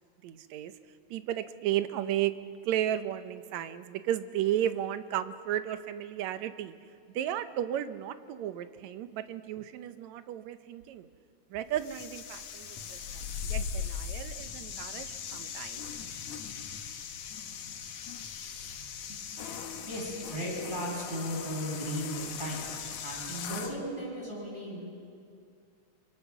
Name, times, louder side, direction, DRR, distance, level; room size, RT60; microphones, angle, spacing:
voice 1, 0.2-0.7 1.1-2.3 2.6-6.7 7.1-11.1 11.5-15.8, right 11 dB, 75° right, 11 dB, 2.1 m, -34 dB
sound 1, 11.7-23.8, left 7 dB, 70° left, 2.5 m, -39 dB
voice 2, 19.8-22.7 23.0-24.8, equal, 10° right, -4 dB, 7.3 m, -36 dB
25.5 x 25.0 x 6.0 m, 2.3 s
omnidirectional pair, 3.4 m